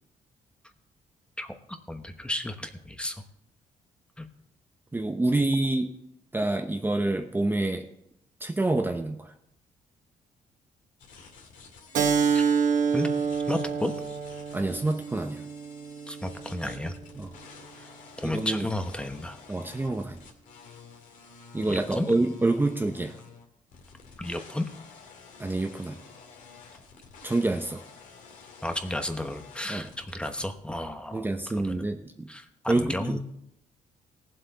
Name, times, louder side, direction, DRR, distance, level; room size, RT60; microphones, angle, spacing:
voice 1, 1.9-3.2 4.2-4.3 12.3-12.5 12.9-13.1 13.5-13.9 16.1-16.9 18.2-19.4 21.7-22.1 24.2-24.7 28.6-31.3 31.6-31.8 32.3-33.2, left 1 dB, 5° left, 7 dB, 1.1 m, -32 dB
voice 2, 4.9-5.9 6.3-7.9 8.4-9.3 14.5-15.4 17.2-17.3 18.2-18.7 19.5-20.2 21.5-23.1 25.4-26.0 27.2-27.8 29.7-29.9 31.1-32.3 32.7-33.2, right 2 dB, 15° right, 4 dB, 0.9 m, -27 dB
sound 1, 11.0-30.5, left 5 dB, 70° left, 2.4 m, -50 dB
Keyboard (musical), 11.9-17.1, right 6 dB, 70° right, 1.4 m, -28 dB
18.0 x 7.7 x 4.1 m, 0.77 s
cardioid pair, 95°, 14 cm